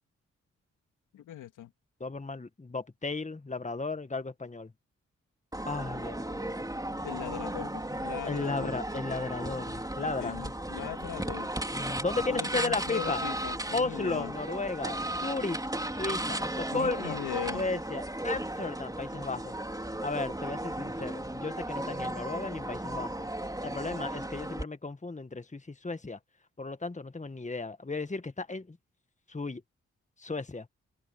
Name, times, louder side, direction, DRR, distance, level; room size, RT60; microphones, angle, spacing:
voice 1, 1.1-1.7 7.0-8.7 10.0-11.5 12.3-14.3 16.7-17.6, left 11 dB, 90° left, 2.9 m, -39 dB
voice 2, 2.0-4.7 5.7-6.5 8.2-10.5 11.7-13.2 13.7-15.6 15.9-17.2 17.5-19.5 20.0-23.3 23.6-26.2 26.6-28.8 29.3-29.6 30.2-30.7, left 3 dB, 25° left, 1.8 m, -35 dB
sound 1, 5.5-24.6, right 1 dB, 10° right, 4.2 m, -35 dB
supercardioid pair, 45°, 30 cm